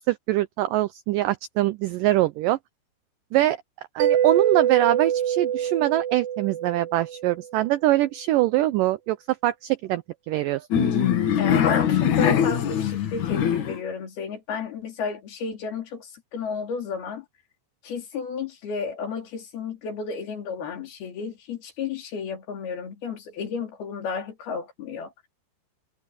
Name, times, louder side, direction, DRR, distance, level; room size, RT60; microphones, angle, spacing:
voice 1, 0.0-2.6 3.3-3.6 4.0-9.2 9.4-10.7, right 15 dB, 90° right, 1.9 m, -23 dB
Mallet percussion, 4.0-7.5, right 10 dB, 55° right, 2.7 m, -24 dB
sound 1, 10.7-13.8, left 8 dB, 55° left, 2.9 m, -22 dB
voice 2, 11.4-17.3 17.8-25.1, left 5 dB, 70° left, 5.3 m, -32 dB
omnidirectional pair, 4.5 m